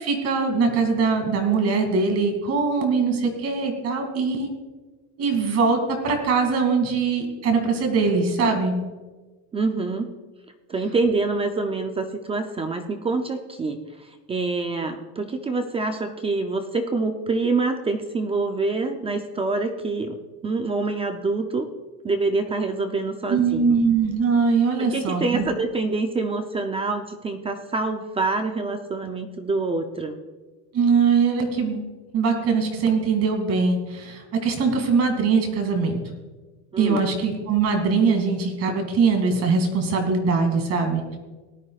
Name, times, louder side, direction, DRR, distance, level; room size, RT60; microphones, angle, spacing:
voice 1, 0.0-4.5 5.2-8.7 23.3-25.5 30.7-31.8 32.1-36.0 36.8-41.2, right 5 dB, 40° right, 4 dB, 2.4 m, -22 dB
voice 2, 9.5-10.1 10.7-21.7 22.0-23.7 24.8-30.1 36.7-37.0, right 3 dB, 15° right, 6 dB, 0.4 m, -26 dB
18.5 x 12.5 x 2.4 m, 1.3 s
cardioid pair, 160°, 40 cm